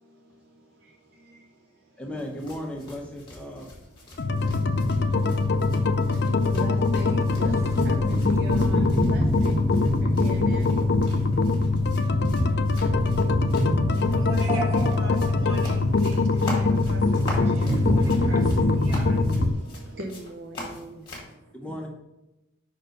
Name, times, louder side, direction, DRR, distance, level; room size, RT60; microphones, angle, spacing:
voice 1, 0.0-2.0 4.0-10.7 11.2-11.4 13.9-14.6 17.5-17.9 18.3-18.4 18.8-21.5, right 1 dB, 50° right, 1 dB, 0.7 m, -44 dB
voice 2, 2.0-3.7 21.5-21.9, left 1 dB, 5° left, 0 dB, 0.8 m, -35 dB
sound 1, 2.2-21.3, left 2 dB, 25° left, 1.7 m, -43 dB
sound 2, 4.2-19.5, left 4 dB, 50° left, 0.4 m, -23 dB
sound 3, 4.3-19.5, right 1 dB, 15° right, 0.4 m, -29 dB
voice 3, 14.1-19.3, right 2 dB, 70° right, 0 dB, 1.5 m, -42 dB
5.2 x 4.4 x 5.1 m, 0.94 s
head